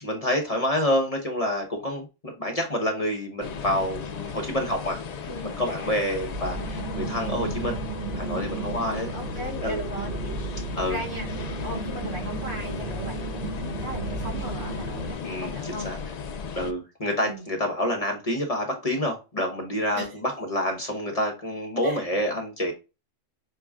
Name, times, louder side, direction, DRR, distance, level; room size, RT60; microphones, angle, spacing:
voice 1, 0.0-5.0 5.4-7.8 8.1-9.1 9.6-9.8 10.8-11.0 15.2-16.0 16.5-22.7, left 1 dB, 30° left, 0.9 m, -28 dB
sound 1, 3.4-16.7, left 6 dB, 60° left, 0.4 m, -36 dB
sound 2, 6.1-15.1, right 3 dB, 50° right, 0.7 m, -34 dB
voice 2, 8.9-10.4 10.8-11.3 11.6-15.9 17.2-17.5 19.9-20.2 21.8-22.0, equal, 80° right, 1.9 m, -37 dB
5.5 x 2.2 x 3.5 m
omnidirectional pair, 1.3 m